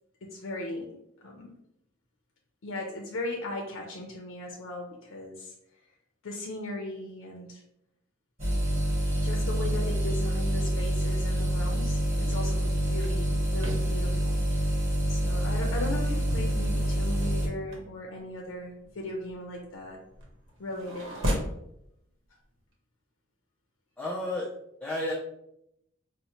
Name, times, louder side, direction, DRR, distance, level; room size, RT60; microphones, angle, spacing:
voice 1, 0.2-0.9 1.2-1.5 2.6-5.5 6.2-7.6 9.2-14.4 15.1-20.0 20.6-21.1, left 1 dB, 80° left, 1 dB, 0.5 m, -37 dB
sound 1, 8.4-17.5, right 1 dB, 30° right, 1.4 m, -27 dB
sound 2, 12.2-21.6, equal, 75° right, 0.9 m, -38 dB
voice 2, 24.0-24.5 24.8-25.1, left 1 dB, 5° left, -5 dB, 0.4 m, -31 dB
4.2 x 2.1 x 2.9 m, 0.79 s
head